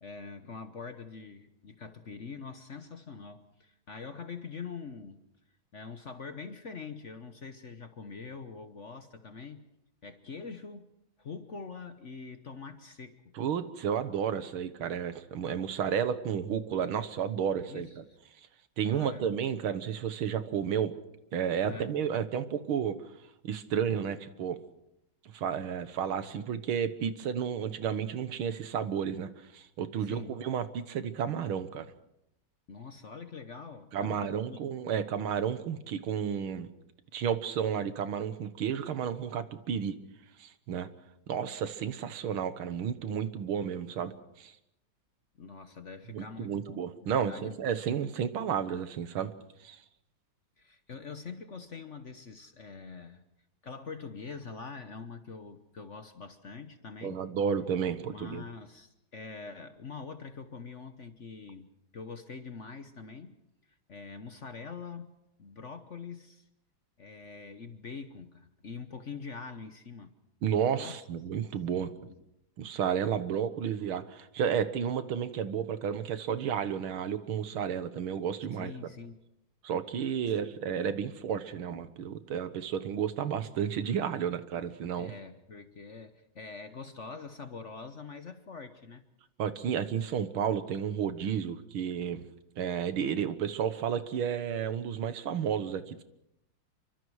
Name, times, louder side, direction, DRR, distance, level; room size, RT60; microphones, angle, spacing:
voice 1, 0.0-5.2 5.7-9.7 10.0-10.9 11.2-13.2 17.7-18.0 18.9-19.3 21.6-21.9 30.1-30.3 32.7-34.6 45.4-47.6 50.6-53.2 53.6-57.2 58.0-63.4 63.7-65.1 65.4-66.5 67.0-70.1 70.8-70.9 71.9-72.2 78.5-79.2 85.0-89.1, left 5 dB, 45° left, 9 dB, 1.1 m, -44 dB
voice 2, 13.4-18.0 18.8-20.9 21.3-23.0 23.4-24.6 25.3-31.9 33.9-36.7 37.1-40.0 40.4-40.9 41.3-44.5 46.1-49.3 49.6-49.8 57.0-58.4 70.4-71.9 72.6-78.9 79.6-85.1 89.4-92.3 92.6-96.0, right 8 dB, 85° right, 11 dB, 2.1 m, -32 dB
28.5 x 24.5 x 4.8 m, 0.82 s
omnidirectional pair, 2.2 m